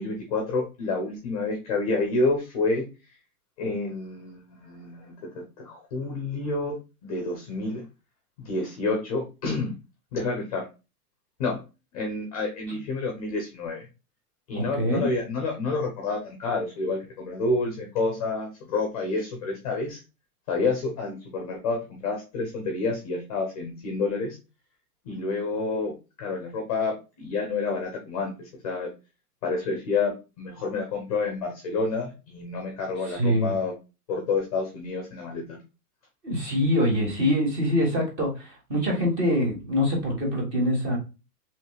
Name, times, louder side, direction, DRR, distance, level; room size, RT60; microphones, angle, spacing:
voice 1, 0.0-2.8 3.6-7.8 8.4-9.7 10.1-10.7 11.4-11.6 11.9-13.9 14.5-20.0 20.5-24.4 25.0-28.9 29.4-33.7 34.1-35.6, left 3 dB, 25° left, 2 dB, 0.6 m, -29 dB
voice 2, 14.8-15.1 33.1-33.5 36.2-41.0, equal, 25° right, -1 dB, 1.4 m, -24 dB
4.8 x 3.1 x 2.2 m, 0.29 s
hypercardioid pair, 170°, 46 cm